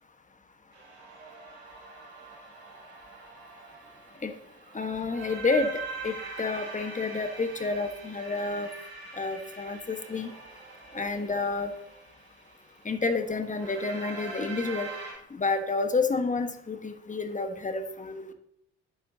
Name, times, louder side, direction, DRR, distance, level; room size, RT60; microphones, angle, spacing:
sound 1, 0.7-15.1, right 4 dB, 80° right, 2.5 m, -43 dB
voice 1, 4.7-5.7 6.0-8.7 9.1-10.3 10.9-11.7 12.8-14.9 15.3-18.3, left 3 dB, 25° left, 7 dB, 1.4 m, -29 dB
12.5 x 10.0 x 2.8 m, 0.77 s
figure-of-eight pair, 50°, 32 cm